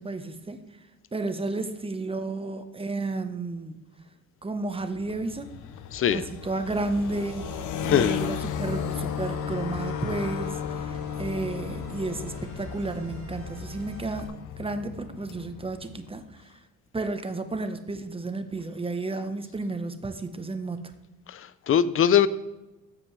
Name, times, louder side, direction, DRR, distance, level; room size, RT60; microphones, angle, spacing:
voice 1, 0.0-3.8 4.4-5.5 6.1-14.3 14.6-16.6 16.9-20.9, right 2 dB, 20° right, 8 dB, 1.0 m, -32 dB
sound 1, 4.7-16.3, left 8 dB, 85° left, 0.8 m, -35 dB
voice 2, 5.9-6.3 7.8-8.1 21.3-22.3, left 9 dB, 45° left, 16 dB, 0.5 m, -22 dB
sound 2, 6.7-14.3, right 3 dB, 45° right, 1.5 m, -43 dB
15.0 x 5.2 x 3.2 m, 1.0 s
cardioid pair, 90°, 30 cm